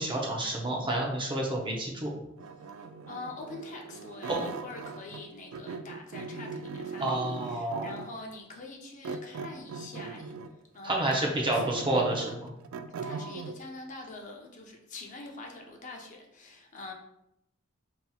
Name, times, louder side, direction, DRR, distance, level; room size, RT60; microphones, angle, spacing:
voice 1, 0.0-2.2 4.3-4.4 7.0-7.9 10.8-12.5, right 1 dB, 25° right, -1 dB, 0.7 m, -29 dB
sound 1, 2.4-5.3 5.5-8.2 9.0-10.6 11.1-13.6, right 4 dB, 80° right, 0.3 m, -40 dB
voice 2, 3.1-10.3 10.7-11.8 13.0-16.9, left 3 dB, 40° left, 1 dB, 0.6 m, -44 dB
5.3 x 2.9 x 2.3 m, 0.83 s
head